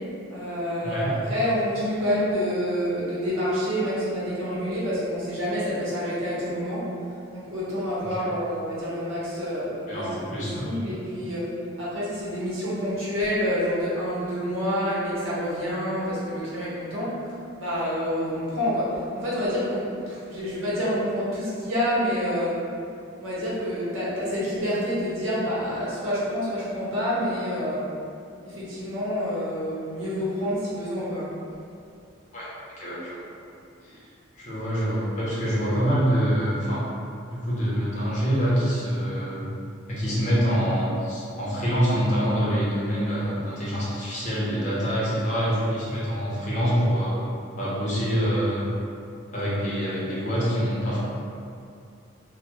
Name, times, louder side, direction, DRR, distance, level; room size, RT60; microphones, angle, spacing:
voice 1, 0.3-6.9 7.3-11.5 11.8-22.6 23.2-27.9 28.4-31.3, equal, 85° right, -8 dB, 0.8 m, -28 dB
voice 2, 0.8-1.1 8.2-8.3 9.9-10.8 32.3-32.5 32.8-33.2 33.8-34.0 34.4-36.8 37.3-39.4 39.9-47.2 47.6-48.7 49.3-51.0, equal, 35° left, -8 dB, 0.6 m, -25 dB
2.2 x 2.0 x 2.8 m, 2.5 s
head